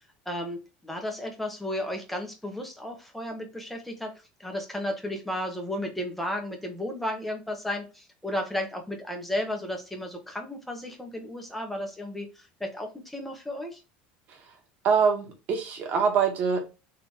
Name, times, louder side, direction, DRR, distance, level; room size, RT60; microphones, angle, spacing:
voice 1, 0.2-4.1 4.4-13.8, left 1 dB, 5° left, 1.3 m, -33 dB
voice 2, 14.8-16.6, right 6 dB, 45° right, 1.7 m, -24 dB
3.8 x 3.0 x 4.5 m
supercardioid pair, 130°, 4 cm